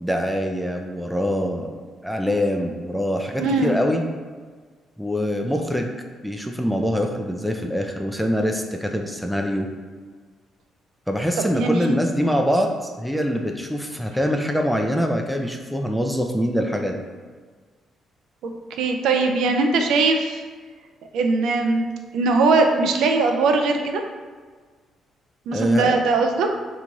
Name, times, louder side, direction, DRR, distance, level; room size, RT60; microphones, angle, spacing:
voice 1, 0.0-1.8 2.0-4.0 5.0-5.9 6.2-9.7 11.1-17.0 25.5-26.0, equal, ahead, 2 dB, 0.3 m, -24 dB
voice 2, 3.4-3.8 11.5-11.9 18.4-20.4 21.1-21.9 22.1-24.0 25.5-26.5, right 3 dB, 85° right, 4 dB, 0.4 m, -20 dB
3.0 x 2.3 x 3.9 m, 1.5 s
cardioid pair, 90°, 0 cm